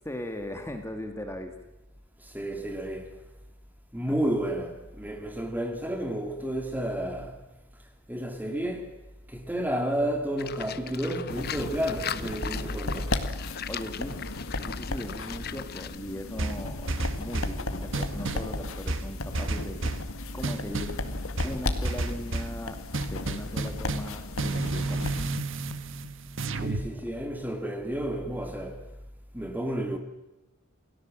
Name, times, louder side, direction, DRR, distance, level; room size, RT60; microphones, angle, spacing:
voice 1, 0.0-1.5 4.1-4.2 13.7-14.2 14.6-21.0 21.4-25.1 26.9-27.1, left 1 dB, 15° left, 2.2 m, -39 dB
voice 2, 2.2-3.2 3.9-7.5 8.1-9.0 9.3-13.2 26.6-29.0 29.3-30.0, right 1 dB, 10° right, 2.4 m, -31 dB
Livestock farm animals working animals, 10.4-16.0, left 8 dB, 50° left, 0.9 m, -39 dB
sound 1, 11.3-25.3, left 2 dB, 85° left, 2.0 m, -35 dB
sound 2, 16.4-17.6 17.9-18.5 18.9-20.1 20.4-21.0 21.4-22.6 22.9-26.9, right 2 dB, 65° right, 1.5 m, -31 dB
28.5 x 17.5 x 7.6 m
head